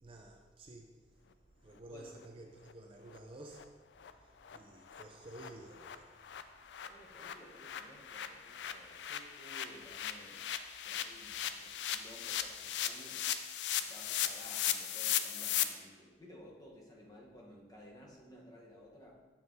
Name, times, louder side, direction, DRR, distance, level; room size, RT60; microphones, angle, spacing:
voice 1, 0.0-1.0 1.6-3.7 4.1-6.1, right 1 dB, 30° right, 0.4 m, -52 dB
sound 1, 2.7-2.8 3.1-3.2 3.5-3.6 4.0-4.1 4.4-4.6 4.9-5.0 5.3-5.5 5.7-15.6, left 10 dB, 75° left, 0.4 m, -38 dB
voice 2, 6.8-10.4 10.8-13.2 13.8-19.2, equal, 20° left, 1.0 m, -56 dB
6.9 x 6.1 x 2.7 m
head